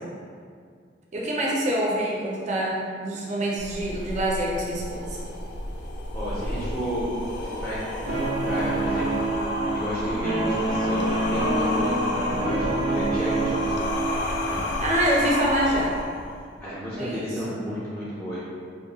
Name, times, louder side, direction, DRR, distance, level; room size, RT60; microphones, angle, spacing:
voice 1, 1.1-5.2 14.8-15.9 17.0-17.3, right 1 dB, 40° right, -4 dB, 0.5 m, -25 dB
sound 1, 3.6-16.6, left 2 dB, 65° left, 0.4 m, -31 dB
voice 2, 6.1-7.1 7.4-9.2 9.6-13.8 16.6-18.4, equal, 10° left, -10 dB, 0.5 m, -32 dB
Guitar, 8.1-14.6, right 2 dB, 90° right, 0.5 m, -27 dB
2.9 x 2.3 x 2.7 m, 2.1 s
head